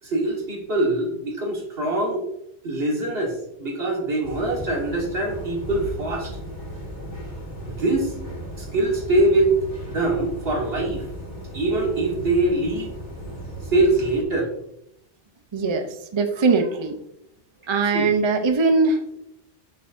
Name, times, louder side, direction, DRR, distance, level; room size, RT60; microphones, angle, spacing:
voice 1, 0.0-2.2 2.6-6.4 7.6-8.1 8.6-9.5 9.9-11.1 11.5-12.9 13.7-14.5 17.9-18.1, right 2 dB, 60° right, -1 dB, 1.8 m, -23 dB
sound 1, 4.2-14.2, right 1 dB, 45° left, 1.7 m, -36 dB
voice 2, 15.5-16.9 17.7-19.2, right 4 dB, 35° right, 6 dB, 0.5 m, -21 dB
6.5 x 5.8 x 2.5 m, 0.79 s
omnidirectional pair, 1.1 m